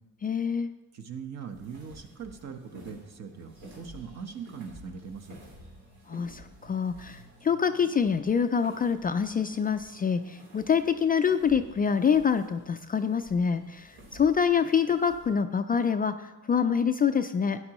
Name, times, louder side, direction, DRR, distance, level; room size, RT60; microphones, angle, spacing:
voice 1, 0.2-0.7 6.1-17.6, left 6 dB, 25° left, 8 dB, 0.3 m, -26 dB
voice 2, 0.9-5.4, right 6 dB, 50° right, 6 dB, 1.1 m, -41 dB
sound 1, 1.4-15.3, equal, 85° right, 3.6 m, -52 dB
13.5 x 9.7 x 3.0 m, 1.1 s
cardioid pair, 110°, 34 cm